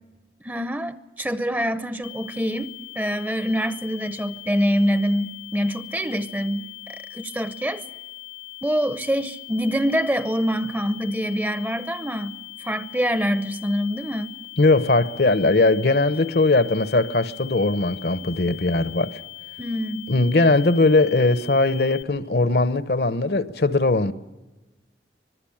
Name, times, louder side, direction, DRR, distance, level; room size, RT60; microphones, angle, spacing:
voice 1, 0.4-6.7 7.1-7.8 8.6-12.4 12.6-14.3 19.6-20.1, equal, 10° right, 0.7 m, -25 dB
sound 1, 2.0-22.0, left 21 dB, 85° left, 1.1 m, -41 dB
voice 2, 14.6-19.1 20.1-24.1, left 2 dB, 60° left, 1.0 m, -20 dB
25.5 x 20.5 x 8.7 m
head